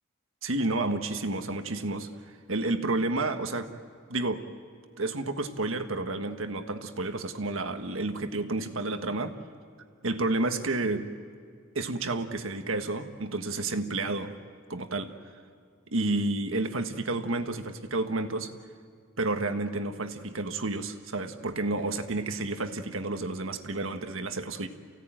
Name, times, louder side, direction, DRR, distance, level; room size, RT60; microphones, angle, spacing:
voice 1, 0.4-3.7 4.1-4.4 5.0-9.3 10.0-11.0 11.7-14.3 14.7-15.1 15.9-18.5 19.2-24.7, right 2 dB, 85° right, 7 dB, 1.5 m, -30 dB
29.0 x 17.0 x 9.1 m, 2.2 s
head